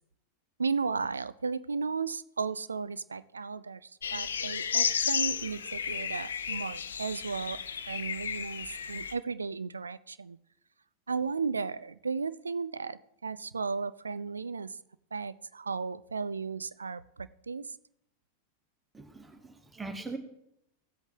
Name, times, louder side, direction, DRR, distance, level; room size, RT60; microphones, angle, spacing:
voice 1, 0.6-7.6 7.9-10.4 11.1-14.8 15.1-17.8, right 5 dB, 75° right, 16 dB, 0.4 m, -35 dB
sound 1, 4.0-9.1, left 7 dB, 70° left, 0.5 m, -33 dB
voice 2, 18.9-20.2, right 3 dB, 10° right, 7 dB, 1.1 m, -41 dB
17.0 x 8.0 x 2.9 m, 0.77 s
figure-of-eight pair, 90°, 0 cm